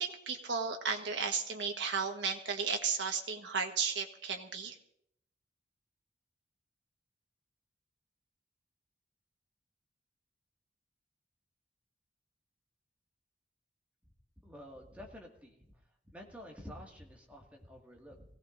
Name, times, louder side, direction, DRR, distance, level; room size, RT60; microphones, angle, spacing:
voice 1, 0.0-4.8, right 5 dB, 85° right, 4 dB, 1.4 m, -34 dB
voice 2, 14.4-15.7 16.0-18.3, equal, 10° right, -1 dB, 2.1 m, -50 dB
24.0 x 17.0 x 2.6 m, 0.73 s
head